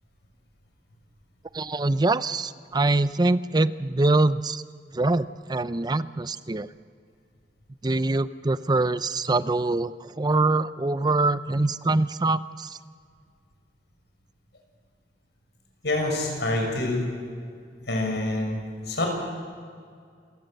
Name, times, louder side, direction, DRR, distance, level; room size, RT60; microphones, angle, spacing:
voice 1, 1.5-4.6 4.9-6.7 7.8-12.8, right 2 dB, 25° right, 14 dB, 0.6 m, -24 dB
voice 2, 15.8-17.0 17.9-18.6 18.9-19.1, left 2 dB, 70° left, 1 dB, 6.5 m, -26 dB
29.0 x 17.0 x 6.8 m, 2.1 s
head